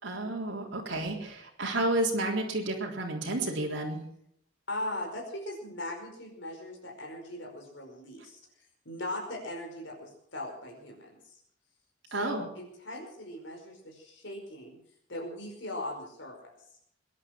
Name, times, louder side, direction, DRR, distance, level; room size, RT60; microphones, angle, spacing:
voice 1, 0.0-4.0 12.1-12.5, right 2 dB, 60° right, -3 dB, 3.7 m, -31 dB
voice 2, 4.7-11.4 12.1-14.8 15.1-16.5, left 1 dB, 65° left, 1 dB, 5.0 m, -39 dB
22.0 x 11.0 x 6.0 m, 0.70 s
head